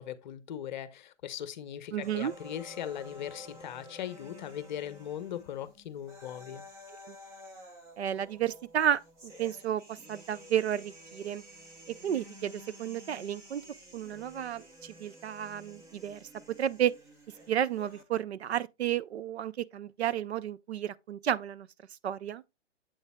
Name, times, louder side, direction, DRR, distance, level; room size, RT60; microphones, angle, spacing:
voice 1, 0.0-6.6, left 10 dB, 40° left, 0.8 m, -39 dB
voice 2, 1.9-2.3 7.0-7.1 8.0-11.4 12.0-13.6 13.9-16.3 16.6-16.9 17.5-21.7 22.0-22.4, right 10 dB, 60° right, 0.6 m, -32 dB
sound 1, 2.0-18.0, equal, 10° right, 0.6 m, -51 dB
8.1 x 7.9 x 2.2 m
hypercardioid pair, 140°, 36 cm